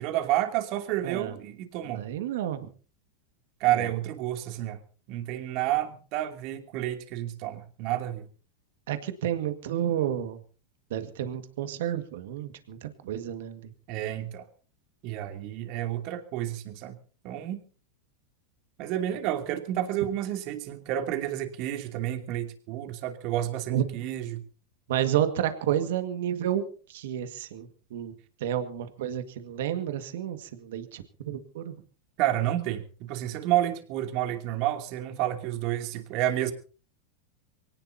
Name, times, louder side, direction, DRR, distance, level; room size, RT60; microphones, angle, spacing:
voice 1, 0.0-2.1 3.6-4.8 5.1-8.2 13.9-14.4 15.0-17.0 17.2-17.6 18.8-24.4 32.2-36.5, right 13 dB, 55° right, 6 dB, 2.8 m, -30 dB
voice 2, 1.0-1.3 1.9-2.7 3.7-3.9 8.9-10.4 10.9-13.7 23.7-23.8 24.9-28.1 28.4-31.8, right 10 dB, 70° right, 9 dB, 1.8 m, -31 dB
24.0 x 18.0 x 2.8 m, 0.38 s
hypercardioid pair, 105°, 0 cm